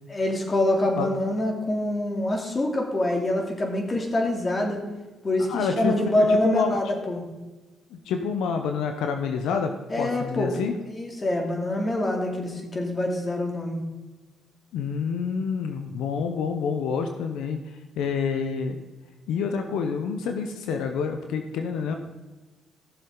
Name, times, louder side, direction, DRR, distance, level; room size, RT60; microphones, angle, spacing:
voice 1, 0.1-4.8 5.2-7.2 9.9-10.5 10.8-13.8, left 1 dB, 30° left, 1 dB, 2.8 m, -25 dB
voice 2, 5.5-6.8 7.9-10.7 14.7-18.8 19.3-21.9, left 6 dB, 90° left, 5 dB, 0.9 m, -28 dB
16.0 x 7.1 x 3.9 m, 1.2 s
cardioid pair, 90°, 0 cm